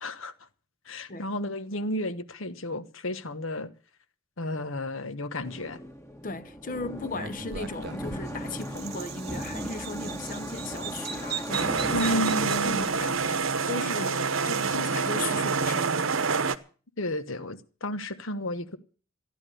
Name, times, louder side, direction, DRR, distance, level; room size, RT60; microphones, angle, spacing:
voice 1, 0.0-0.3 0.9-3.7 4.4-5.8 11.9-12.9 17.0-18.8, left 1 dB, 70° left, 1.2 m, -32 dB
sound 1, 5.4-14.2, equal, 15° left, 1.8 m, -38 dB
voice 2, 6.2-16.1, left 3 dB, 40° left, 0.8 m, -37 dB
Bird vocalization bird call bird song, 7.1-13.4, right 7 dB, 45° right, 1.1 m, -40 dB
sound 2, 11.5-16.6, right 5 dB, 70° right, 0.9 m, -27 dB
14.5 x 10.5 x 6.7 m
head